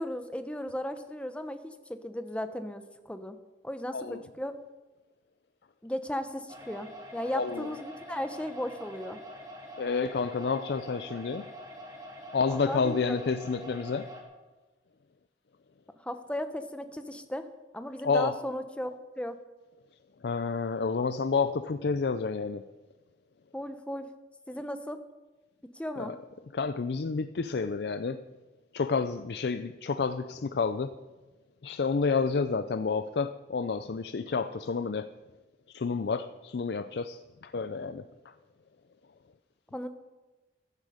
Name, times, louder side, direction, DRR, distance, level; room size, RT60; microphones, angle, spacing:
voice 1, 0.0-3.4 3.6-4.5 5.8-9.2 12.5-13.2 16.0-17.5 17.7-19.4 23.5-24.1 24.5-25.0 25.7-26.1 39.7-39.9, left 1 dB, 5° left, 9 dB, 0.8 m, -36 dB
sound 1, 6.5-14.2, equal, 20° right, 2.3 m, -45 dB
voice 2, 7.3-7.7 9.8-11.5 12.3-14.1 18.0-18.4 20.2-22.6 26.0-26.2 26.5-28.2 28.7-30.9 31.6-35.1 35.7-38.3, left 4 dB, 65° left, 11 dB, 0.4 m, -30 dB
15.0 x 12.0 x 5.0 m, 1.2 s
head